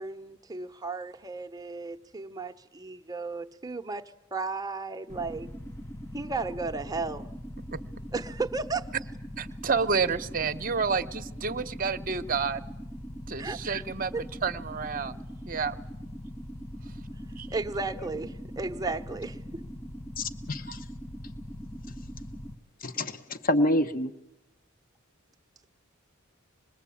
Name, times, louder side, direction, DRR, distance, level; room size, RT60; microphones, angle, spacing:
voice 1, 0.0-4.0 4.3-5.5 6.1-7.3 8.1-8.8 13.4-13.6 14.1-14.2 17.5-19.6, right 3 dB, 20° right, 7 dB, 0.9 m, -34 dB
sound 1, 5.1-22.6, equal, 10° left, 0.9 m, -41 dB
voice 2, 9.4-12.6 13.3-15.2 15.5-15.8 17.4-17.5, right 5 dB, 40° right, 12 dB, 0.9 m, -29 dB
voice 3, 20.2-20.8 22.8-24.1, left 1 dB, 45° left, 9 dB, 1.1 m, -27 dB
26.0 x 21.0 x 8.5 m, 0.91 s
head